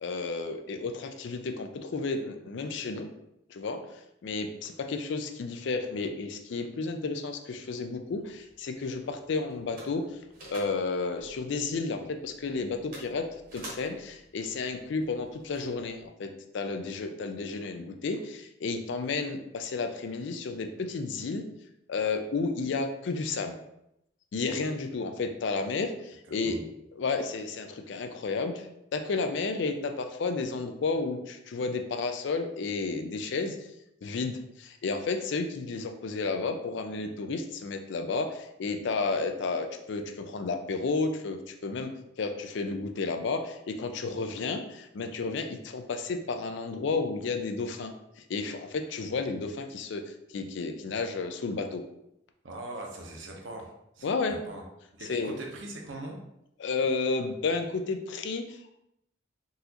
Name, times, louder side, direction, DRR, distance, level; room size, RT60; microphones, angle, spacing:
voice 1, 0.0-3.1 3.5-3.8 4.2-10.2 10.5-21.4 21.9-23.6 24.3-26.6 27.0-28.7 28.9-33.6 34.0-41.9 42.2-51.8 54.0-54.4 55.1-55.4 56.6-58.7, left 4 dB, 60° left, 6 dB, 0.4 m, -32 dB
sound 1, 8.1-16.1, right 1 dB, 45° right, 1.0 m, -51 dB
voice 2, 26.3-26.6 52.4-54.6 54.9-56.2, right 1 dB, 70° right, 0 dB, 0.7 m, -41 dB
3.9 x 2.4 x 2.8 m, 0.80 s
head